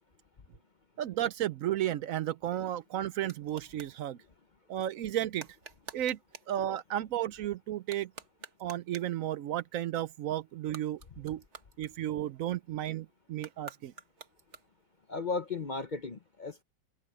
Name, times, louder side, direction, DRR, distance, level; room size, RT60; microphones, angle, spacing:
voice 1, 1.0-4.2 4.7-5.5 5.9-6.2 6.5-8.1 8.6-11.4 11.8-13.9, right 12 dB, 70° right, 1.0 m, -33 dB
sound 1, 2.3-4.0 5.3-6.6 7.8-9.2 10.6-12.4 13.3-15.0, right 6 dB, 55° right, 1.5 m, -50 dB
voice 2, 15.1-16.6, left 4 dB, 40° left, 0.8 m, -35 dB
omnidirectional pair, 1.5 m